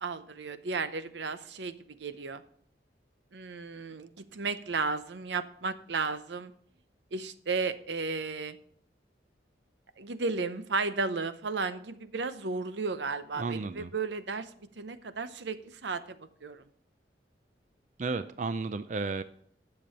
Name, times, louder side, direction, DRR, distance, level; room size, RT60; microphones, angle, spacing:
voice 1, 0.0-2.4 3.3-6.5 7.1-8.6 10.0-14.5 14.8-16.6, right 4 dB, 90° right, 11 dB, 0.8 m, -34 dB
voice 2, 13.4-13.9 18.0-19.2, right 3 dB, 45° right, 12 dB, 0.4 m, -33 dB
10.5 x 6.9 x 5.5 m, 0.62 s
head